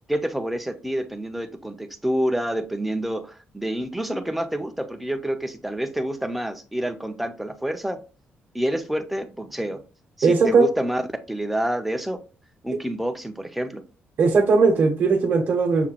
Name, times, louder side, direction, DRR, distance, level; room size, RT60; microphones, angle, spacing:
voice 1, 0.1-8.0 8.5-9.8 10.2-12.2 12.6-13.8, right 1 dB, ahead, 6 dB, 0.4 m, -28 dB
voice 2, 10.2-10.7 14.2-15.9, right 4 dB, 50° right, 0 dB, 0.7 m, -18 dB
5.9 x 2.2 x 2.8 m, 0.34 s
cardioid pair, 150°, 4 cm